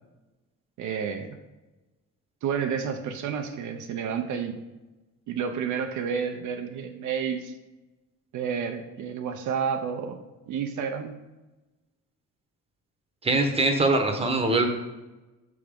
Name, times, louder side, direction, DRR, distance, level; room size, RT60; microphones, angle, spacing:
voice 1, 0.8-1.4 2.4-4.6 5.3-7.5 8.3-10.2 10.5-11.2, right 7 dB, 75° right, 5 dB, 0.6 m, -30 dB
voice 2, 13.2-14.7, right 2 dB, 20° right, 4 dB, 0.9 m, -22 dB
6.0 x 3.5 x 5.2 m, 1.1 s
cardioid pair, 90°, 30 cm